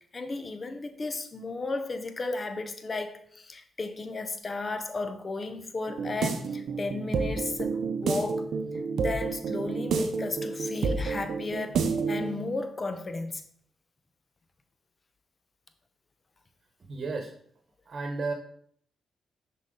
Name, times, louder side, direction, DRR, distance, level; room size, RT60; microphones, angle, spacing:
voice 1, 0.1-8.5 8.9-13.4, left 3 dB, 40° left, 0.9 m, -34 dB
sound 1, 5.9-12.4, right 4 dB, 70° right, 0.7 m, -30 dB
voice 2, 16.9-17.3 17.8-18.3, right 3 dB, 50° right, 1.1 m, -32 dB
6.0 x 4.2 x 3.8 m
supercardioid pair, 55°, 0 cm